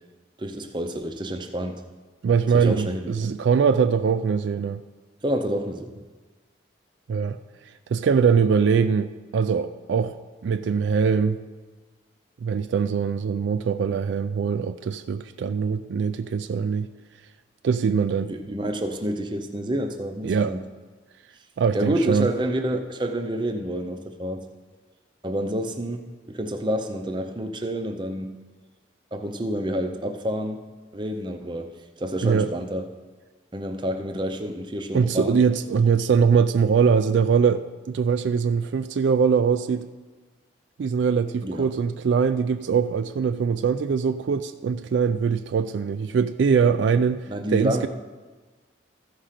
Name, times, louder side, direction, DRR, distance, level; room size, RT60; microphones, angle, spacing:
voice 1, 0.4-1.8 2.5-3.3 5.2-5.9 18.2-20.7 21.7-24.5 25.2-28.4 29.1-30.6 30.9-31.7 32.0-32.9 33.5-35.4 41.4-41.7 47.3-47.9, right 1 dB, 25° right, 6 dB, 0.6 m, -28 dB
voice 2, 2.2-4.8 7.1-7.4 7.9-10.2 10.4-11.4 12.4-16.9 17.6-18.3 20.2-20.5 21.6-22.3 32.2-32.5 34.9-39.9 40.8-47.9, right 6 dB, 70° right, 10 dB, 0.3 m, -22 dB
14.0 x 5.0 x 5.8 m, 1.3 s
head